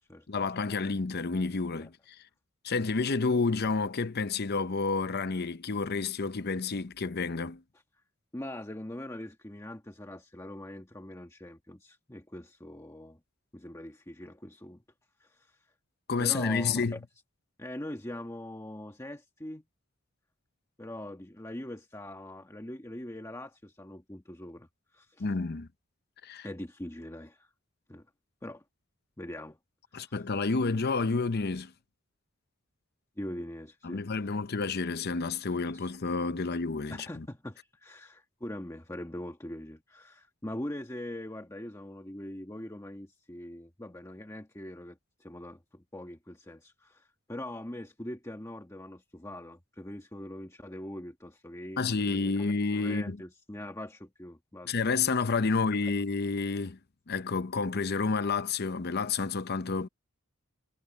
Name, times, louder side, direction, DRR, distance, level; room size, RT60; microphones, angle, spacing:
voice 1, 0.3-2.2 2.6-7.6 16.1-17.0 25.2-25.7 26.2-26.5 29.9-31.7 33.8-37.3 51.8-53.2 54.6-56.8 57.1-59.9, left 4 dB, 50° left, 0.7 m, -30 dB
voice 2, 8.3-13.2 13.5-14.8 15.2-15.6 16.2-17.0 17.6-19.6 20.8-25.3 26.4-27.5 27.9-28.0 28.4-28.6 29.2-29.6 30.0-30.2 33.2-34.0 35.7-35.9 36.9-54.7, left 1 dB, 15° left, 1.4 m, -42 dB
head